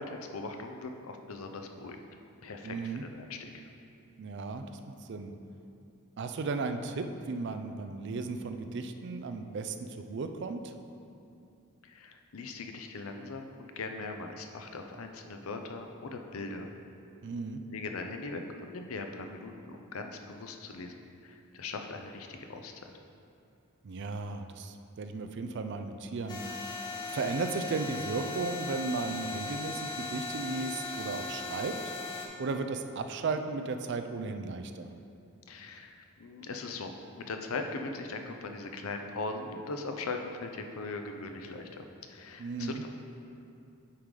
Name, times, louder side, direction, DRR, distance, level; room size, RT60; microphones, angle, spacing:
voice 1, 0.0-2.0 2.4-3.6 11.8-16.7 17.7-20.9 21.2-22.7 35.5-42.9, left 3 dB, 75° left, 5 dB, 0.6 m, -40 dB
voice 2, 2.6-3.0 4.2-4.7 5.0-5.3 6.2-10.7 17.2-17.6 23.8-26.4 27.1-31.7 32.4-34.9 42.4-42.8, right 3 dB, 55° right, 8 dB, 0.4 m, -35 dB
sound 1, 26.3-32.3, left 3 dB, 20° left, 0.7 m, -38 dB
8.5 x 3.8 x 4.8 m, 2.6 s
head